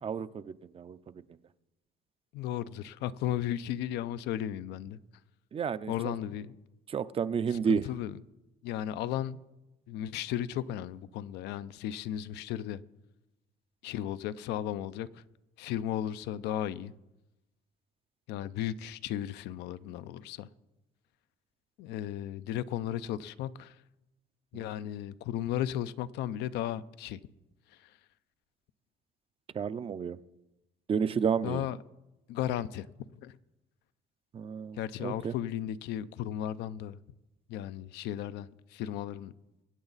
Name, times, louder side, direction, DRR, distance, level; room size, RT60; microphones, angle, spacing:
voice 1, 0.0-1.0 5.5-6.1 6.9-7.9 24.5-24.7 29.5-30.2 30.9-31.7 34.3-35.3, right 7 dB, 35° right, 0.5 m, -31 dB
voice 2, 2.3-5.0 5.9-6.6 7.7-8.1 8.6-9.4 9.9-12.8 13.8-15.1 15.6-16.9 18.3-20.5 21.8-23.7 24.5-27.2 31.4-31.8 32.3-32.9 33.2-33.3 34.8-37.0 37.5-39.3, left 11 dB, 85° left, 0.5 m, -35 dB
23.0 x 8.8 x 4.0 m
cardioid pair, 110°, 17 cm